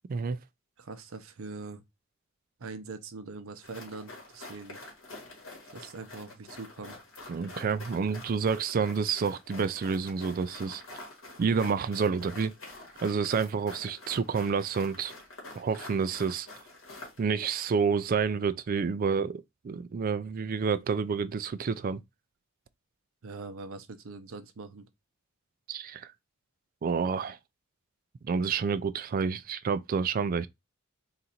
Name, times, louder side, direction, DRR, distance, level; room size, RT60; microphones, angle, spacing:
voice 1, 0.8-1.8 2.6-4.8 5.7-7.0 23.2-24.9, right 3 dB, 75° right, 0.7 m, -42 dB
sound 1, 3.6-17.2, left 2 dB, 75° left, 2.0 m, -47 dB
voice 2, 7.3-10.8 11.4-12.5 13.0-15.1 15.5-16.5 17.2-22.0 25.7-26.1 26.8-27.4 28.2-30.5, right 5 dB, 40° right, 0.3 m, -29 dB
3.9 x 2.5 x 4.2 m
head